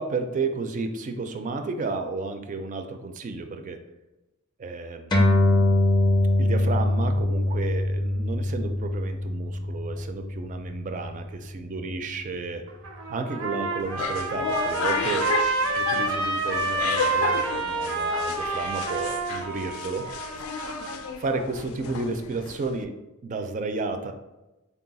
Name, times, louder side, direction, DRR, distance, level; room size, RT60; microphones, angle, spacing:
voice 1, 0.0-3.8 4.6-5.8 6.4-12.6 13.1-15.2 15.8-20.1 21.2-22.9 23.2-24.1, right 3 dB, 35° right, 6 dB, 0.4 m, -32 dB
sound 1, 5.1-11.9, left 1 dB, 20° left, 0.5 m, -24 dB
Trumpet, 12.7-21.1, right 3 dB, 85° right, 0.6 m, -28 dB
sound 2, 13.8-22.8, left 6 dB, 75° left, 0.3 m, -33 dB
4.0 x 2.3 x 3.9 m, 1.0 s
head